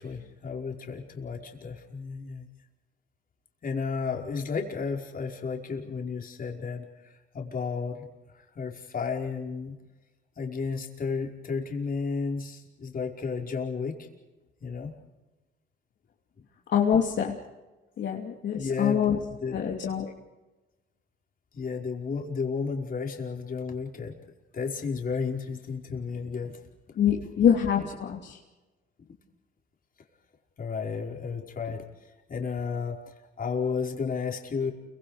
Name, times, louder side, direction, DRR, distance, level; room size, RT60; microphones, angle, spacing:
voice 1, 0.0-2.5 3.6-8.1 8.3-9.7 10.4-14.1 14.6-14.9 18.5-19.6 21.5-24.1 24.5-26.6 30.6-31.8 32.3-34.7, left 5 dB, 45° left, 1 dB, 5.1 m, -33 dB
voice 2, 16.7-17.3 18.0-19.2 19.5-20.1 27.0-28.4, left 8 dB, 65° left, -1 dB, 3.0 m, -25 dB
29.5 x 24.5 x 5.1 m, 1.1 s
cardioid pair, 90°, 20 cm